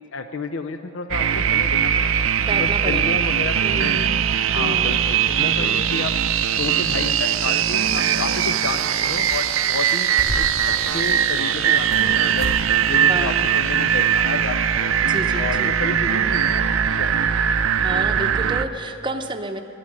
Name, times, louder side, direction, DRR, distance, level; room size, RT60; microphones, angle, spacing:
voice 1, 0.1-2.3 2.6-3.9 4.5-6.2 6.6-10.1 10.4-12.5 12.9-15.0 15.4-17.4, left 4 dB, 75° left, 8 dB, 0.5 m, -31 dB
sound 1, 1.1-18.6, right 8 dB, 90° right, 0.5 m, -20 dB
voice 2, 2.4-3.2 3.6-4.3 4.5-5.0 5.6-5.9 13.1-13.6 15.0-15.8 17.8-19.6, right 2 dB, 25° right, 7 dB, 0.7 m, -31 dB
sound 2, 8.4-8.5 8.8-9.6 9.9-10.7 11.2-12.1 12.4-12.6 12.9-13.0 13.6-13.7, equal, 40° left, 3.3 m, -32 dB
12.5 x 9.9 x 10.0 m, 2.8 s
head